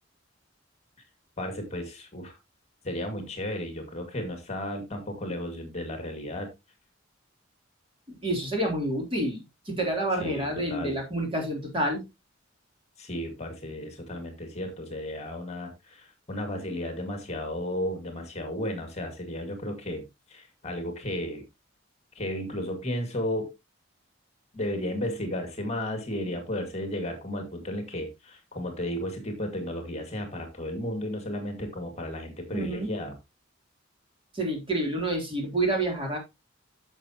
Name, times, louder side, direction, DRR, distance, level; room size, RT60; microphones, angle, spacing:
voice 1, 1.4-2.3 2.8-6.5 10.2-11.0 13.0-21.4 22.2-23.5 24.5-33.1, left 1 dB, 35° left, 5 dB, 2.1 m, -34 dB
voice 2, 8.1-12.0 32.5-32.9 34.3-36.2, right 1 dB, 30° right, 1 dB, 3.3 m, -28 dB
10.5 x 7.0 x 2.9 m, 0.22 s
head